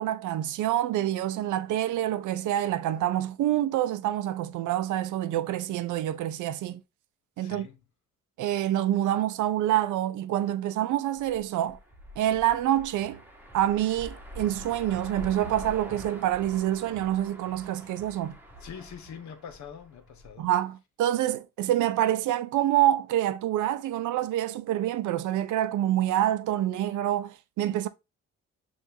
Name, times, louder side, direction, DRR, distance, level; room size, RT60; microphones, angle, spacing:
voice 1, 0.0-6.8 7.4-7.7 8.4-11.8 12.2-13.2 13.5-18.4 20.4-27.9, right 12 dB, 80° right, 0.6 m, -27 dB
voice 2, 7.4-7.8 18.6-20.5, left 7 dB, 70° left, 0.9 m, -44 dB
sound 1, 11.2-20.4, equal, 5° right, 1.0 m, -45 dB
6.3 x 2.6 x 2.6 m
cardioid pair, 90°, 30 cm